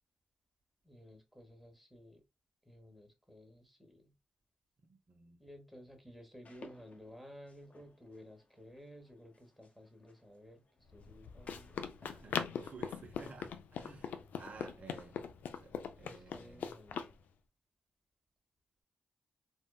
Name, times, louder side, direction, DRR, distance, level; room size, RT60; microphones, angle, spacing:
voice 1, 0.8-2.2 2.7-4.1 5.4-10.6 10.9-11.8 16.0-17.1, equal, 5° right, 1.2 m, -55 dB
voice 2, 4.8-5.4 12.0-15.2 15.5-16.6, right 4 dB, 60° right, 0.9 m, -54 dB
sound 1, 6.4-12.4, left 2 dB, 55° left, 0.8 m, -60 dB
Run, 10.9-17.1, left 7 dB, 85° left, 0.4 m, -41 dB
3.6 x 2.1 x 2.2 m
supercardioid pair, 50°, 3 cm